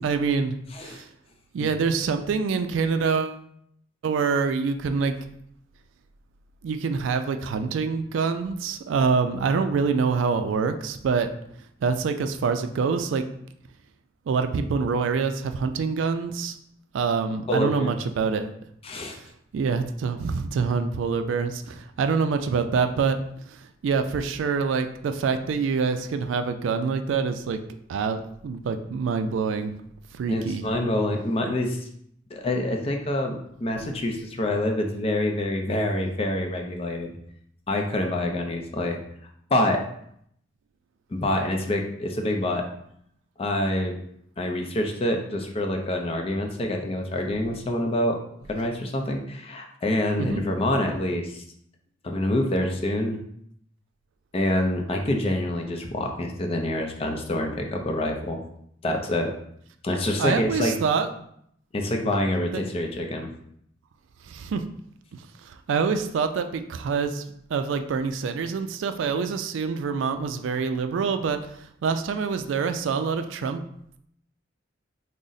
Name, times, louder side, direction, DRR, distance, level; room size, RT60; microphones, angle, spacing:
voice 1, 0.0-1.1 1.5-3.4 4.0-5.1 6.6-11.3 11.8-13.2 14.3-16.6 16.9-18.6 19.1-19.2 19.5-23.2 23.5-27.6 27.9-29.7 30.1-30.7 50.2-50.4 60.2-61.1 62.5-62.6 64.3-64.6 65.1-67.2 67.5-73.6, right 5 dB, 75° right, 8 dB, 0.3 m, -26 dB
voice 2, 0.7-1.0 17.5-18.0 18.8-19.2 30.3-31.8 32.3-37.1 37.7-39.0 39.5-39.8 41.1-42.6 43.4-44.0 44.4-48.2 48.5-51.4 52.0-53.2 54.3-58.4 58.8-59.3 59.8-60.8 61.7-63.3, left 1 dB, 30° left, 3 dB, 0.4 m, -26 dB
3.7 x 2.0 x 3.9 m, 0.70 s
head